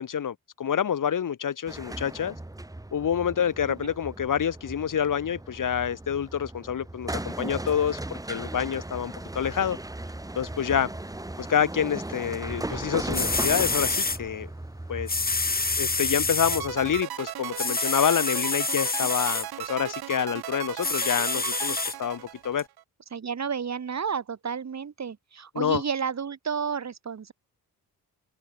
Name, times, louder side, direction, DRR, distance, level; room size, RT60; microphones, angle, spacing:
voice 1, 0.0-2.3 2.9-9.8 10.3-10.9 11.4-14.5 14.9-15.2 15.8-22.7 25.5-25.8, left 8 dB, 55° left, 2.9 m, -27 dB
sound 1, 1.7-17.0, right 1 dB, 10° right, 2.1 m, -37 dB
sound 2, 12.8-12.9 13.1-14.2 15.1-16.6 17.6-19.5 20.8-21.9 22.6-22.7, left 3 dB, 25° left, 2.9 m, -27 dB
sound 3, 16.5-22.8, right 12 dB, 85° right, 4.7 m, -36 dB
voice 2, 23.1-27.3, right 6 dB, 45° right, 4.1 m, -31 dB
cardioid pair, 90°, 37 cm